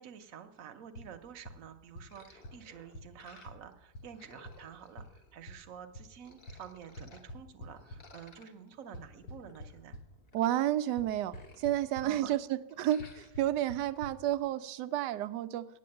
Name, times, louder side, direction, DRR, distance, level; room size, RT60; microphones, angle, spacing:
voice 1, 0.0-10.0 12.0-12.3, right 8 dB, 55° right, 8 dB, 1.2 m, -49 dB
sound 1, 0.9-1.1 1.5-1.6 2.0-2.1 2.4-2.5 2.9-3.0 3.5-3.6 3.9-4.0 4.4-4.5 5.0-5.1 5.5-5.6 5.9-6.0 6.5-6.6 7.0-8.0 8.9-10.0 11.0-11.1 11.3-11.7 12.0-12.1 13.0-13.1 13.3-13.4 13.7-13.8 14.0-14.1, equal, 80° left, 2.1 m, -44 dB
sound 2, 2.1-3.7 4.0-5.6 6.1-7.2 7.8-10.8 11.1-12.3 12.7-13.4, left 3 dB, 35° left, 1.3 m, -58 dB
voice 2, 10.3-15.7, right 12 dB, 80° right, 14 dB, 1.2 m, -31 dB
8.5 x 8.3 x 8.6 m, 0.93 s
omnidirectional pair, 1.9 m